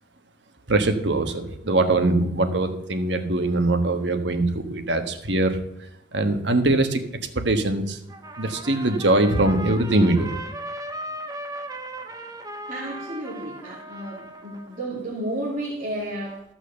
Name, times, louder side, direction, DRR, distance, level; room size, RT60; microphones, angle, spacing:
voice 1, 0.7-5.6 6.1-7.0 7.3-8.0 8.4-10.3, right 2 dB, 65° right, 7 dB, 1.4 m, -22 dB
Trumpet, 8.1-14.9, right 1 dB, 20° right, 0.7 m, -37 dB
voice 2, 12.7-16.4, right 1 dB, 40° right, -6 dB, 2.7 m, -32 dB
13.5 x 6.1 x 7.0 m, 0.81 s
head